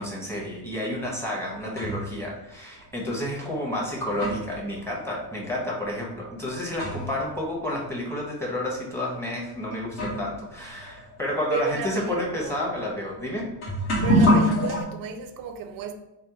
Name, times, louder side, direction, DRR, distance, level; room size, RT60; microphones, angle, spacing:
voice 1, 0.0-13.5, left 1 dB, 5° left, 1.3 m, -30 dB
sound 1, 1.3-2.2 3.1-3.2 3.8-7.3 7.6-7.7 8.5-8.6 9.5-9.6 9.9-14.8, equal, 50° left, 1.2 m, -27 dB
voice 2, 3.8-4.2 11.5-12.6 14.0-15.9, right 6 dB, 45° right, 0.5 m, -33 dB
3.3 x 2.2 x 3.0 m
supercardioid pair, 75°, 48 cm